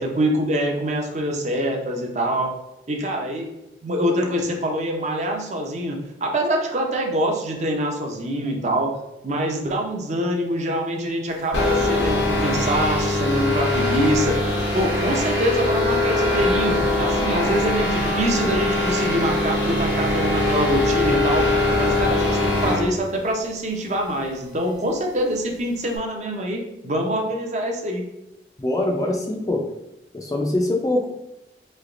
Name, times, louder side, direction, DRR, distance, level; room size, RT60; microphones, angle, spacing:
voice 1, 0.0-2.5 2.9-3.5 3.8-8.9 9.2-14.4 14.7-21.5 21.8-28.0, right 1 dB, 40° right, 2 dB, 0.5 m, -25 dB
sound 1, 11.5-22.9, left 2 dB, 85° left, 0.8 m, -22 dB
voice 2, 28.6-29.6 30.1-31.1, left 1 dB, 20° left, 0 dB, 0.4 m, -23 dB
3.3 x 3.1 x 2.5 m, 0.92 s
head